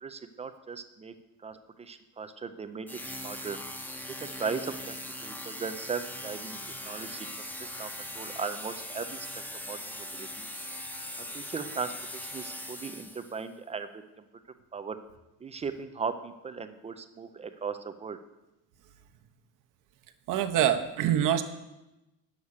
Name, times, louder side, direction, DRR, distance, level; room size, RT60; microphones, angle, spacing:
voice 1, 0.0-1.1 1.4-3.6 4.2-5.0 5.2-6.6 6.9-7.3 7.6-9.3 9.7-9.8 10.1-10.5 11.3-11.9 12.2-14.0 14.7-15.0 15.4-18.2, right 5 dB, 20° right, 9 dB, 0.4 m, -37 dB
sound 1, 2.9-13.4, left 1 dB, 5° left, 0.7 m, -40 dB
voice 2, 20.3-21.4, right 10 dB, 60° right, 7 dB, 0.9 m, -25 dB
9.5 x 7.2 x 6.5 m, 0.97 s
cardioid pair, 155°, 36 cm